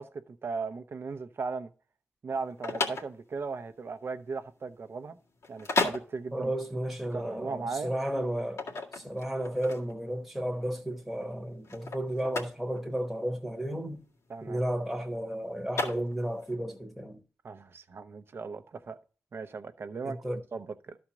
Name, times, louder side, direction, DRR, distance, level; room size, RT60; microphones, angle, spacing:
voice 1, 0.0-1.7 2.2-5.2 5.5-6.5 7.1-7.9 14.3-14.6 17.4-19.0 19.3-21.0, right 4 dB, 55° right, 0.8 m, -37 dB
sound 1, 2.3-16.5, left 3 dB, 90° left, 2.0 m, -36 dB
voice 2, 6.3-8.6 8.9-14.0 14.4-17.2 20.0-20.4, right 1 dB, ahead, 1.1 m, -33 dB
13.0 x 4.3 x 6.1 m
wide cardioid pair, 140°, 5 cm